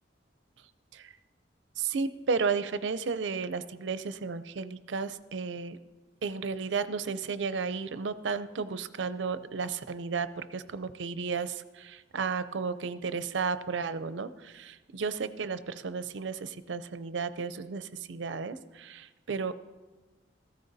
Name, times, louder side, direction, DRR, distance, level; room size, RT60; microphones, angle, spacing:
voice 1, 1.8-5.8 6.2-19.5, right 5 dB, 80° right, 14 dB, 0.5 m, -33 dB
14.5 x 13.5 x 2.7 m, 1.3 s
head